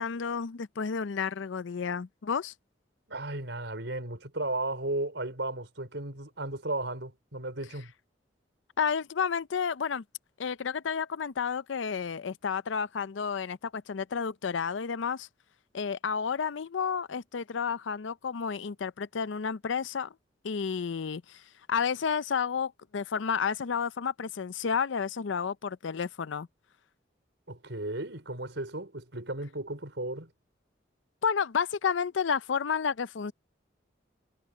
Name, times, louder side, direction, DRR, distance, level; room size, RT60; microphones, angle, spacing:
voice 1, 0.0-2.5 8.8-10.0 10.4-15.3 15.7-20.1 20.4-21.4 21.7-26.5 31.2-33.3, left 6 dB, 90° left, 0.5 m, -31 dB
voice 2, 3.1-7.9 27.5-30.3, right 2 dB, 75° right, 5.0 m, -35 dB
head